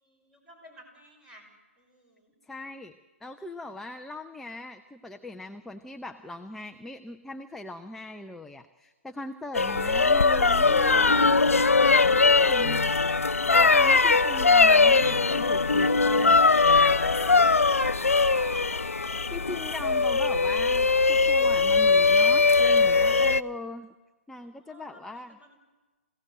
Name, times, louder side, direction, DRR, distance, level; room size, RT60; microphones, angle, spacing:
voice 1, 0.0-1.5 1.8-2.3 16.6-18.8 24.4-25.6, left 1 dB, 10° right, 3 dB, 5.7 m, -47 dB
voice 2, 2.4-2.9 3.2-11.4 12.1-12.9 13.5-16.4 19.0-23.9 24.3-25.4, left 2 dB, 5° left, 5 dB, 0.7 m, -40 dB
sound 1, 9.5-23.4, left 4 dB, 85° left, 0.8 m, -21 dB
27.0 x 17.0 x 7.7 m, 1.2 s
figure-of-eight pair, 135°, 7 cm